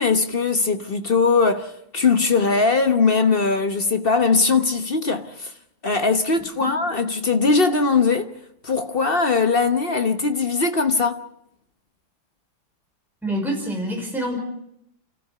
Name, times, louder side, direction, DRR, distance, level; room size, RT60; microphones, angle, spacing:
voice 1, 0.0-5.5 5.8-8.3 8.6-11.2, left 4 dB, 40° left, 0.9 m, -20 dB
voice 2, 13.2-14.4, equal, ahead, 5.4 m, -26 dB
30.0 x 14.5 x 6.7 m
omnidirectional pair, 2.3 m